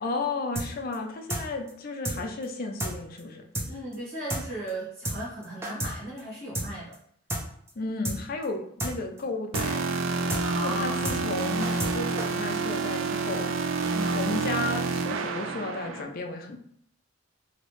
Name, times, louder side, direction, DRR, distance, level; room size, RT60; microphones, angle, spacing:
voice 1, 0.0-3.5 7.8-9.9 10.6-13.5 14.1-16.6, left 3 dB, 50° left, 4 dB, 0.5 m, -33 dB
sound 1, 0.6-0.7 0.9-1.0 1.3-1.4 1.7-1.8 2.0-2.2 2.4-2.5 2.8-2.9 3.2-3.3 3.5-3.7 3.9-4.0 4.3-4.4 4.7-4.8 5.0-5.2 5.4-5.9 6.2-6.3 6.5-6.7 6.9-7.0 7.3-7.4 7.7-7.8 8.0-8.2 8.4-8.5 8.8-8.9 9.2-9.3 9.5-9.7 9.9-10.0 10.3-10.4 10.7-10.8 11.0-11.2 11.4-11.9 12.2-12.3, right 1 dB, 15° right, 0.6 m, -30 dB
voice 2, 3.7-7.0 10.4-11.0 13.9-14.3, right 1 dB, 60° right, -9 dB, 1.2 m, -36 dB
sound 2, 9.5-16.0, right 4 dB, 85° right, 0.3 m, -28 dB
3.1 x 2.8 x 3.0 m, 0.68 s
head